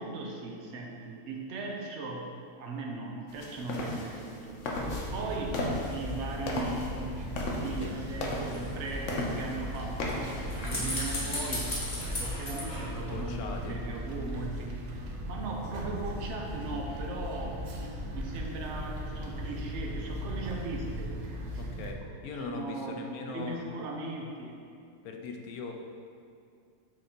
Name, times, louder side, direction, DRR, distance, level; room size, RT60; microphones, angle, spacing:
voice 1, 0.0-4.6 4.9-11.8 12.1-17.7 18.1-22.0 22.4-23.0 23.3-24.6, right 3 dB, 55° right, -1 dB, 1.0 m, -38 dB
sound 1, 3.3-10.7, left 1 dB, 60° left, 1.1 m, -36 dB
sound 2, 4.7-21.9, equal, 75° right, 0.4 m, -38 dB
sound 3, 8.3-13.7 14.0-14.1, left 1 dB, 30° left, 1.2 m, -38 dB
voice 2, 13.0-13.8 21.6-22.0 22.2-23.7 25.0-25.7, left 4 dB, 85° left, 3 dB, 1.1 m, -39 dB
6.3 x 3.8 x 4.3 m, 2.4 s
omnidirectional pair, 1.5 m